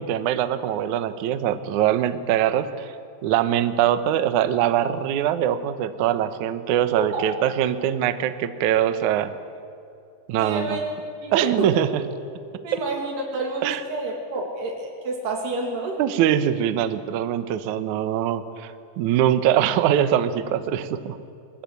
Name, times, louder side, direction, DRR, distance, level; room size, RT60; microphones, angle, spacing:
voice 1, 0.0-2.9 3.2-9.3 10.3-10.8 11.3-11.9 12.7-12.8 13.6-13.8 16.0-21.2, right 10 dB, 85° right, 11 dB, 1.7 m, -22 dB
voice 2, 10.4-10.8 11.2-11.8 12.6-16.0, right 3 dB, 70° right, 1 dB, 4.3 m, -29 dB
22.5 x 20.5 x 9.3 m, 2.5 s
omnidirectional pair, 5.0 m